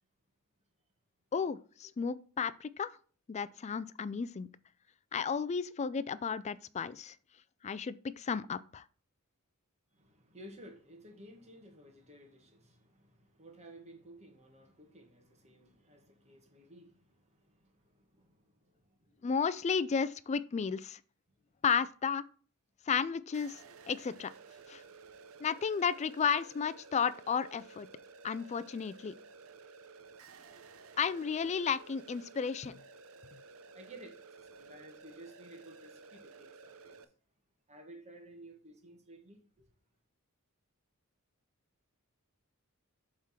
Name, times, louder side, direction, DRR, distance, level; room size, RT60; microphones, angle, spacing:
voice 1, 1.3-2.9 3.3-4.5 5.1-7.2 7.6-8.8 19.2-21.0 21.6-22.2 22.9-24.3 24.7-24.8 25.4-27.9 28.2-29.1 31.0-32.8, left 6 dB, 30° left, 0.3 m, -33 dB
voice 2, 9.9-19.3 21.5-21.6 25.0-25.1 33.7-37.1 37.7-39.7, right 1 dB, 30° right, 1.7 m, -55 dB
sound 1, 23.3-37.0, right 4 dB, 65° right, 0.7 m, -54 dB
7.3 x 3.7 x 5.8 m
head